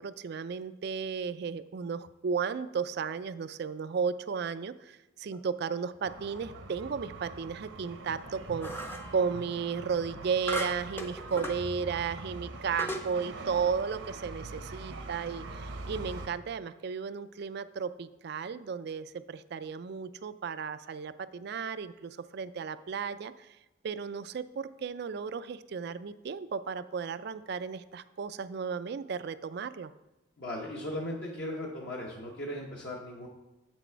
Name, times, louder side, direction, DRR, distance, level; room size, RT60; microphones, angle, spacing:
voice 1, 0.0-23.6 23.8-29.9, right 6 dB, 55° right, 14 dB, 0.3 m, -34 dB
sound 1, 6.0-16.3, right 3 dB, 70° right, 0.8 m, -43 dB
sound 2, 8.6-9.1 10.5-11.6 12.2-12.3 12.8-13.1, right 1 dB, 10° left, 0.5 m, -36 dB
voice 2, 30.4-33.3, left 1 dB, 55° left, -2 dB, 1.0 m, -37 dB
8.1 x 6.1 x 4.5 m, 1.0 s
head